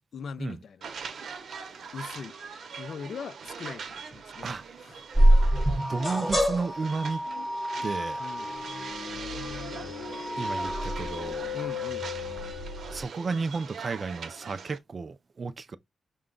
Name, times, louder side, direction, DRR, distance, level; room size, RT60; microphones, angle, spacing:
voice 1, 0.1-0.9 1.9-2.3 2.8-4.5 4.8-5.0 6.0-6.3 8.2-8.5 11.5-12.1, left 6 dB, 55° left, 0.4 m, -40 dB
sound 1, 0.8-14.8, right 6 dB, 65° right, 0.8 m, -42 dB
sound 2, 5.1-11.3, right 1 dB, 5° left, 0.8 m, -26 dB
voice 2, 5.9-7.2 7.8-8.2 10.4-11.5 12.9-15.8, right 4 dB, 35° right, 0.4 m, -33 dB
sound 3, 8.4-13.1, left 5 dB, 80° left, 0.8 m, -37 dB
6.1 x 2.2 x 3.7 m
wide cardioid pair, 165°, 0 cm